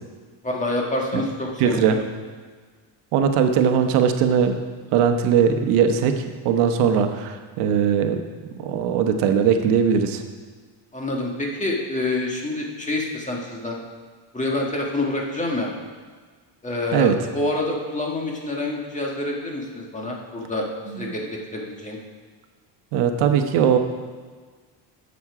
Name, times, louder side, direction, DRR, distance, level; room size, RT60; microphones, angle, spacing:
voice 1, 0.4-2.0 10.9-13.8 14.3-15.7 16.6-20.7 21.0-22.0, left 2 dB, 15° left, -1 dB, 1.7 m, -27 dB
voice 2, 1.6-2.0 3.1-4.6 4.9-8.2 8.6-10.2 16.9-17.2 21.0-21.1 22.9-23.8, right 7 dB, 90° right, 6 dB, 1.1 m, -20 dB
12.0 x 7.2 x 4.9 m, 1.5 s
cardioid pair, 135°, 50 cm